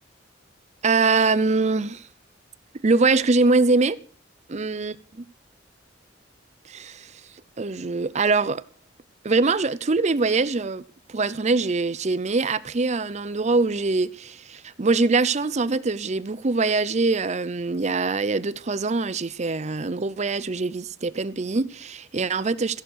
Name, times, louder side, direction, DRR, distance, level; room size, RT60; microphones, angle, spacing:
voice 1, 0.8-2.0 2.8-4.0 4.5-5.2 6.7-7.1 7.6-8.6 9.2-10.8 11.1-22.8, right 3 dB, 35° right, 0.6 m, -23 dB
14.5 x 11.5 x 6.3 m
head